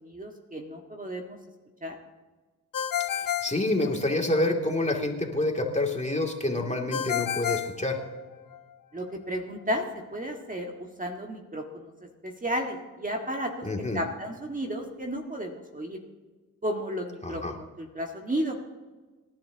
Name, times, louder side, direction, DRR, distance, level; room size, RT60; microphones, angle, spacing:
voice 1, 0.0-1.4 1.8-2.0 8.9-9.8 10.1-11.9 12.2-13.7 13.9-16.0 16.6-18.6, equal, 20° right, 2 dB, 1.8 m, -33 dB
Ringtone, 2.7-4.4 6.9-8.6, left 10 dB, 50° left, 1.2 m, -31 dB
voice 2, 3.2-8.0 13.6-14.0 17.2-17.5, left 2 dB, 15° left, 1 dB, 2.7 m, -27 dB
26.5 x 12.0 x 2.9 m, 1.3 s
hypercardioid pair, 45°, 44 cm